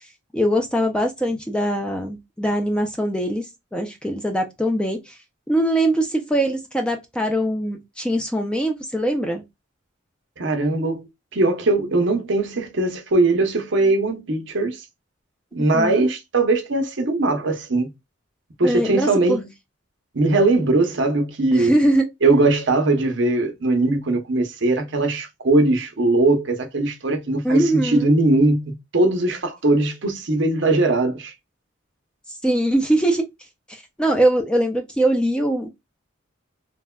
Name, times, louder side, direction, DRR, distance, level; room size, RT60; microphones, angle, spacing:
voice 1, 0.3-5.2 5.5-9.4 15.7-16.1 18.6-19.4 21.5-22.1 27.4-28.2 32.4-33.3 33.7-35.7, right 1 dB, 5° left, 0.3 m, -22 dB
voice 2, 10.4-14.8 15.5-17.9 18.6-19.4 20.1-21.7 22.2-31.3, right 2 dB, 60° right, 0.8 m, -20 dB
3.3 x 2.1 x 2.2 m
head